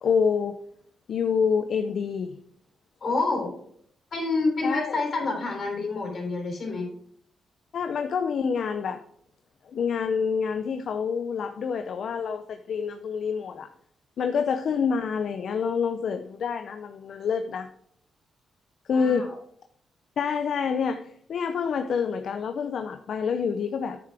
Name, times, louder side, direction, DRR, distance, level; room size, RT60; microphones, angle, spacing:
voice 1, 0.0-0.6 1.1-2.4 4.6-5.0 7.7-9.0 9.7-13.7 14.2-17.7 18.9-19.3 20.2-24.0, left 6 dB, 70° left, 8 dB, 0.5 m, -27 dB
voice 2, 3.0-3.5 4.1-6.9 18.9-19.3, left 3 dB, 50° left, 1 dB, 3.7 m, -28 dB
9.6 x 6.7 x 3.4 m, 0.67 s
cardioid pair, 95°, 0 cm